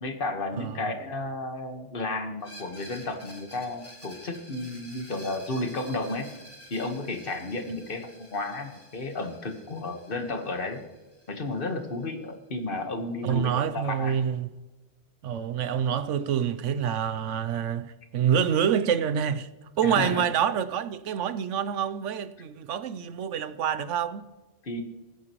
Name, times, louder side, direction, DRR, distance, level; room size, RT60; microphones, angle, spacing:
voice 1, 0.0-6.3 6.7-10.8 11.3-14.2 19.8-20.3 24.6-24.8, left 2 dB, 50° left, 1.6 m, -32 dB
Screech, 2.4-12.0, equal, 10° left, 3.0 m, -50 dB
voice 2, 13.2-14.5 15.2-19.5 19.8-24.3, right 8 dB, 80° right, 1.0 m, -27 dB
20.0 x 9.9 x 3.1 m
omnidirectional pair, 1.2 m